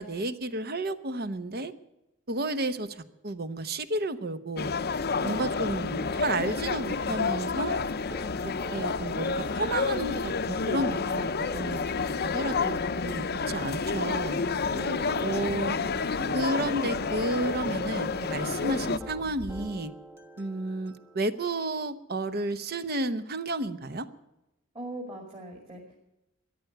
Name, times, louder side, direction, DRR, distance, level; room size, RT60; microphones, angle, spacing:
voice 1, 0.0-1.7 2.3-4.7 5.2-7.8 8.4-11.3 11.5-14.4 15.2-15.7 16.3-19.9 20.4-24.1, right 2 dB, 50° right, 12 dB, 0.9 m, -32 dB
sound 1, 4.6-19.0, left 4 dB, 50° left, 0.6 m, -30 dB
voice 2, 5.2-5.7 14.7-16.0 24.7-26.0, right 1 dB, 30° right, -1 dB, 2.5 m, -41 dB
sound 2, 6.0-21.3, right 2 dB, 10° right, 1.3 m, -50 dB
sound 3, 13.9-19.6, right 1 dB, 85° right, 2.4 m, -45 dB
14.0 x 10.5 x 7.9 m, 0.92 s
head